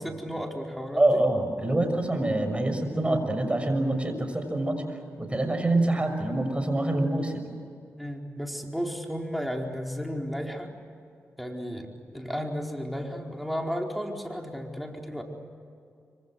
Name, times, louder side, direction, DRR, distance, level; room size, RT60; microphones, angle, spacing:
voice 1, 0.0-1.2 3.8-4.0 8.0-10.7 11.4-15.2, equal, ahead, 1 dB, 4.5 m, -34 dB
voice 2, 1.0-7.5, right 1 dB, 20° right, 6 dB, 6.5 m, -26 dB
25.5 x 25.0 x 7.8 m, 2.5 s
cardioid pair, 55°, 5 cm